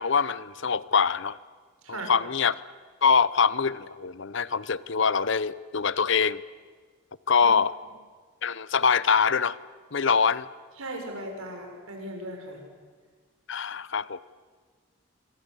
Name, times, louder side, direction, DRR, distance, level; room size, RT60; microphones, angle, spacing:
voice 1, 0.0-1.4 1.9-2.6 3.0-6.4 7.3-7.7 8.4-9.6 9.9-10.5 13.5-14.2, left 6 dB, 60° left, 18 dB, 0.8 m, -24 dB
voice 2, 10.8-12.6, right 1 dB, 85° right, 3 dB, 6.6 m, -37 dB
26.5 x 25.5 x 8.5 m, 1.5 s
head